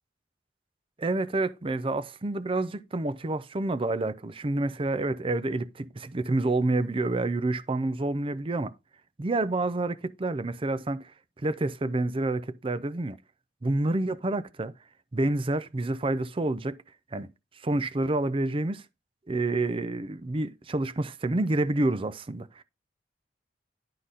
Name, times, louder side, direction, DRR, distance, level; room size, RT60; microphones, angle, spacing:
voice 1, 1.0-8.7 9.2-11.1 11.4-13.2 13.6-14.7 15.1-16.8 17.1-17.3 17.6-18.8 19.3-22.6, right 2 dB, 30° right, 0.5 m, -28 dB
11.0 x 3.9 x 4.1 m
head